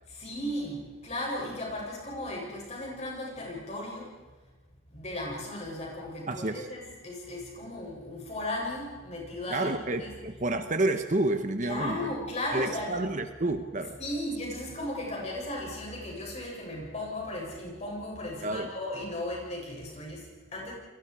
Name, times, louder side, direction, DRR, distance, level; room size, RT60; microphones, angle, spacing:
voice 1, 0.1-4.1 4.9-10.2 11.6-13.0 14.0-20.7, left 1 dB, 35° left, -2 dB, 7.6 m, -36 dB
voice 2, 6.3-6.7 9.5-12.1 12.5-14.0 18.4-18.7, right 2 dB, 40° right, 8 dB, 1.2 m, -29 dB
30.0 x 22.5 x 4.9 m, 1.3 s
head